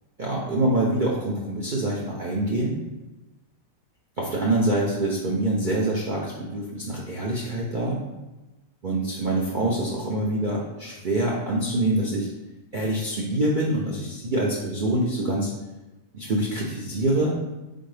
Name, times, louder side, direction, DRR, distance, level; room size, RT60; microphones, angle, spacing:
voice 1, 0.2-2.8 4.2-8.0 8.8-12.3 12.7-15.5 16.1-17.4, right 1 dB, 85° right, -4 dB, 0.4 m, -25 dB
4.1 x 3.8 x 3.3 m, 1.1 s
omnidirectional pair, 1.8 m